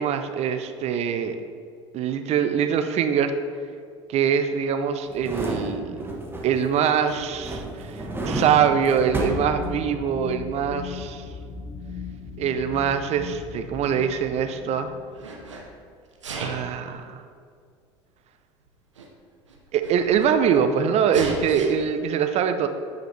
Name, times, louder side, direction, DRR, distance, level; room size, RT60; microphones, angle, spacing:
voice 1, 0.0-1.4 1.9-3.3 4.1-6.0 6.4-11.2 12.4-14.9 16.4-17.2 19.7-22.7, right 7 dB, 45° right, 9 dB, 0.6 m, -23 dB
sound 1, 5.1-6.7 7.1-10.2 10.5-10.6, right 1 dB, 15° right, 1.2 m, -31 dB
sound 2, 8.9-15.7, left 5 dB, 40° left, 0.9 m, -38 dB
Sneeze, 13.6-14.7 15.1-15.6 16.1-16.7 17.7-17.8 18.7-18.8 18.9-19.1 19.4-20.6 21.1-21.7, right 3 dB, 90° right, 0.8 m, -36 dB
9.3 x 5.0 x 3.2 m, 2.2 s
hypercardioid pair, 70°, 15 cm